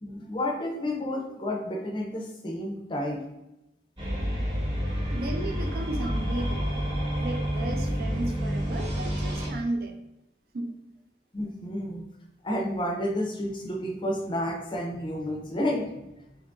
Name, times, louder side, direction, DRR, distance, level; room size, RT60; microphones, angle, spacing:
voice 1, 0.0-3.3 11.3-12.0 12.4-15.9, left 1 dB, 25° left, 1 dB, 0.5 m, -31 dB
sound 1, 4.0-9.5, equal, 25° right, 0.9 m, -29 dB
voice 2, 5.1-6.8 7.2-10.0 10.5-10.7, right 2 dB, 55° right, 4 dB, 0.4 m, -34 dB
2.9 x 2.6 x 3.5 m, 0.87 s
head